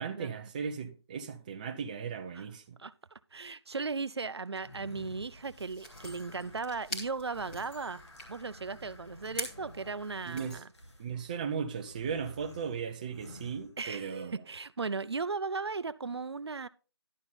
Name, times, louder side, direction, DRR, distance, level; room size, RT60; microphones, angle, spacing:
voice 1, 0.0-2.8 10.3-10.6 11.0-14.4, right 6 dB, 20° right, 0.5 m, -37 dB
voice 2, 2.8-8.0 8.3-10.7 13.8-16.7, right 4 dB, 70° right, 0.6 m, -37 dB
sound 1, 4.6-14.2, left 1 dB, 90° left, 2.4 m, -51 dB
sound 2, 5.5-10.6, equal, 10° left, 1.4 m, -45 dB
11.0 x 7.0 x 4.0 m
figure-of-eight pair, 155°, 14 cm